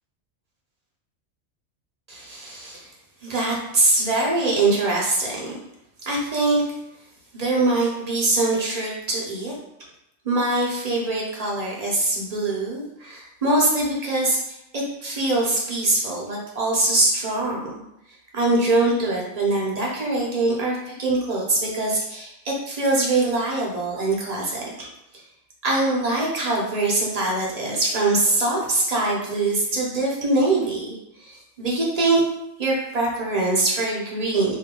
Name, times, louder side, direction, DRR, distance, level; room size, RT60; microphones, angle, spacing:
voice 1, 2.1-2.9 3.2-5.5 6.0-6.6 7.3-9.5 10.2-14.4 14.7-17.6 18.3-24.9 25.6-30.9 31.2-32.2 32.6-34.6, right 2 dB, 35° right, -3 dB, 0.8 m, -23 dB
3.2 x 2.7 x 3.7 m, 0.80 s
omnidirectional pair, 1.3 m